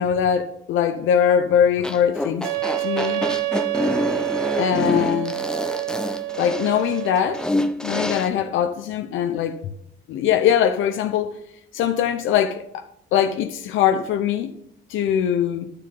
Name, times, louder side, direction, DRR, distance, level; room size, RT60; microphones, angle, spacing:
voice 1, 0.0-2.5 2.8-3.2 4.6-5.4 6.4-7.5 7.8-9.6 10.1-11.3 11.7-12.9 13.1-14.5 14.9-15.7, left 9 dB, 85° left, 0.7 m, -21 dB
sound 1, 1.8-8.3, left 1 dB, 5° left, 0.7 m, -27 dB
Wind instrument woodwind instrument, 2.4-7.5, right 18 dB, 85° right, 0.5 m, -27 dB
12.0 x 6.5 x 3.8 m
cardioid pair, 90°, 20 cm